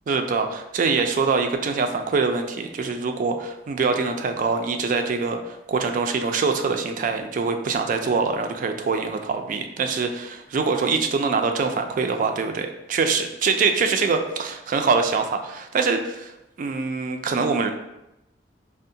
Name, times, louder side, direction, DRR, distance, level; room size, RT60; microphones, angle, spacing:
voice 1, 0.1-16.3 16.6-17.7, right 4 dB, 50° right, 6 dB, 0.3 m, -24 dB
4.4 x 2.1 x 2.6 m, 0.90 s
head